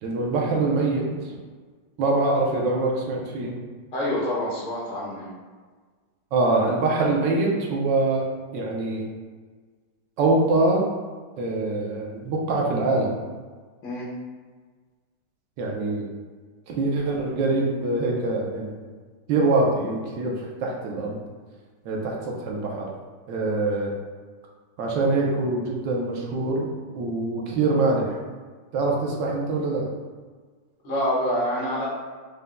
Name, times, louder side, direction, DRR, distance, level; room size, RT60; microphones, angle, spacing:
voice 1, 0.0-1.1 2.0-3.5 6.3-8.2 8.5-9.0 10.2-10.8 11.4-13.2 15.6-16.0 16.7-18.8 19.3-21.2 21.8-22.2 22.4-22.9 23.3-23.9 24.8-26.7 26.9-28.2 28.7-29.9, right 2 dB, 80° right, -1 dB, 1.5 m, -24 dB
voice 2, 3.9-5.3 13.8-14.1 30.8-31.9, equal, 75° left, -6 dB, 1.9 m, -26 dB
5.2 x 3.5 x 2.2 m, 1.5 s
omnidirectional pair, 1.9 m